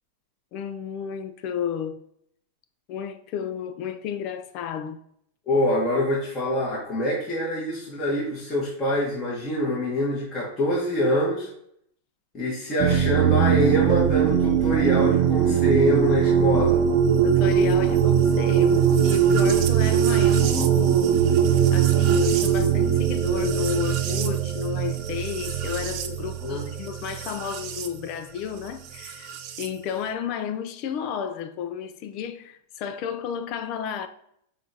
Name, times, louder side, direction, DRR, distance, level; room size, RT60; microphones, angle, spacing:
voice 1, 0.5-2.0 2.9-5.0 17.2-21.2 21.7-29.3 29.6-34.1, left 8 dB, 40° left, 0.3 m, -32 dB
voice 2, 5.5-11.5 12.3-16.8 26.4-26.7, equal, 20° left, 1.1 m, -25 dB
sound 1, 12.8-27.9 29.0-29.7, right 8 dB, 40° right, 0.4 m, -21 dB
5.9 x 2.4 x 2.7 m
supercardioid pair, 150°, 0 cm